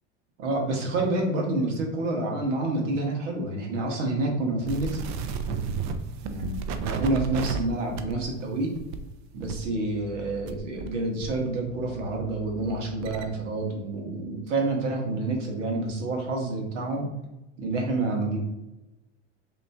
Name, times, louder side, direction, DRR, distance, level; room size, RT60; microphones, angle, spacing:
voice 1, 0.4-5.0 6.2-8.7 9.3-17.1 17.6-18.4, right 2 dB, 80° right, 0 dB, 1.3 m, -28 dB
sound 1, 4.7-10.9 11.2-13.3, right 5 dB, 50° right, 0.5 m, -34 dB
5.1 x 3.0 x 2.4 m, 0.95 s
hypercardioid pair, 95°, 37 cm